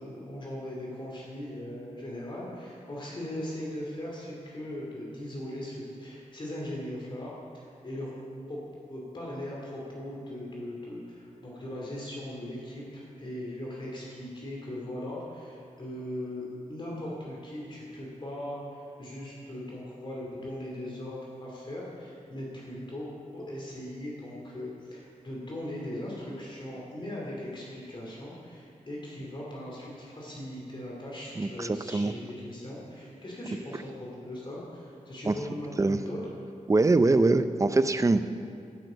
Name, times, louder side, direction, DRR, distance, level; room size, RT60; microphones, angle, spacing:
voice 1, 0.0-8.1 8.5-8.6 8.9-36.3, left 1 dB, 40° left, -4 dB, 2.6 m, -39 dB
voice 2, 31.4-32.1 35.3-35.4 35.8-36.0 36.7-38.2, right 3 dB, 25° right, 11 dB, 0.5 m, -23 dB
12.0 x 6.6 x 8.1 m, 2.3 s
wide cardioid pair, 105°, 13 cm